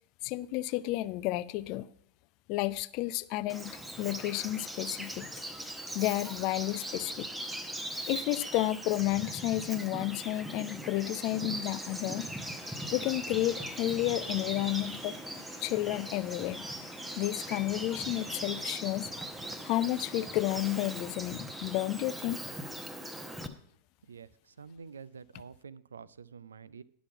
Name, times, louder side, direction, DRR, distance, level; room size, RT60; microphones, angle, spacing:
voice 1, 0.2-1.9 2.5-5.3 5.9-7.3 8.1-12.3 12.9-15.2 15.6-16.6 17.2-19.1 19.6-22.4, left 16 dB, 40° left, 0.4 m, -31 dB
Bird vocalization bird call bird song, 3.5-23.5, right 1 dB, 5° right, 0.8 m, -40 dB
sound 1, 11.5-19.2, left 7 dB, 60° left, 0.8 m, -57 dB
voice 2, 24.1-26.8, right 6 dB, 70° right, 0.4 m, -48 dB
11.0 x 6.1 x 5.7 m
figure-of-eight pair, 90°, 0 cm